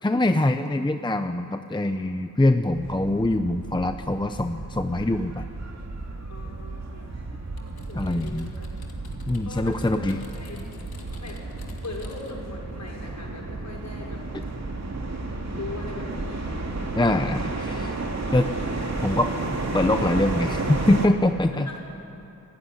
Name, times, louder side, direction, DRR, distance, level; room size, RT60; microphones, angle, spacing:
voice 1, 0.0-5.5 7.9-8.5 9.3-10.2 17.0-18.0 18.3-18.5 19.0-19.3 19.7-21.7, left 1 dB, 15° left, 7 dB, 0.8 m, -23 dB
sound 1, 2.7-21.1, right 2 dB, 50° right, 2.9 m, -33 dB
voice 2, 6.3-7.2 7.7-8.7 9.5-10.1 10.3-10.6 11.2-11.4 11.8-14.2 15.5-16.5 21.5-21.8, left 3 dB, 50° left, -1 dB, 6.1 m, -40 dB
Typing, 7.6-12.5, left 4 dB, 85° left, 2.6 m, -51 dB
27.5 x 16.5 x 10.0 m, 2.8 s
wide cardioid pair, 85°, 36 cm